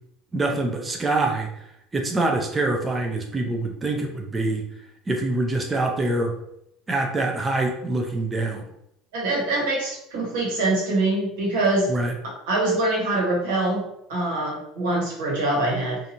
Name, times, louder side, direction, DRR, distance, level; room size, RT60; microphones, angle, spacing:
voice 1, 0.3-1.5 1.9-4.6 5.1-6.3 6.9-8.6 11.9-12.1, right 2 dB, 20° right, 1 dB, 0.4 m, -25 dB
voice 2, 9.1-11.9 12.2-13.8 14.1-16.0, right 2 dB, 90° right, -3 dB, 1.2 m, -24 dB
2.8 x 2.5 x 2.6 m, 0.79 s
supercardioid pair, 115°, 0 cm